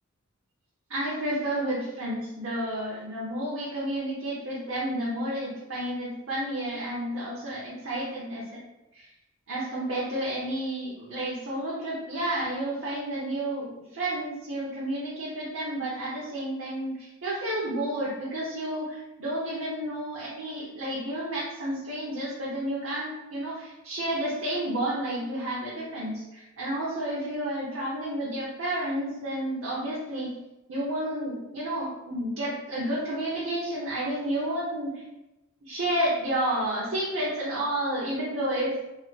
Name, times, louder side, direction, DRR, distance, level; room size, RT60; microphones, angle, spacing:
voice 1, 0.9-8.5 8.9-9.1 9.5-30.3 30.7-35.0 35.6-38.7, right 1 dB, 65° right, -7 dB, 0.8 m, -31 dB
3.6 x 2.1 x 3.1 m, 0.96 s
head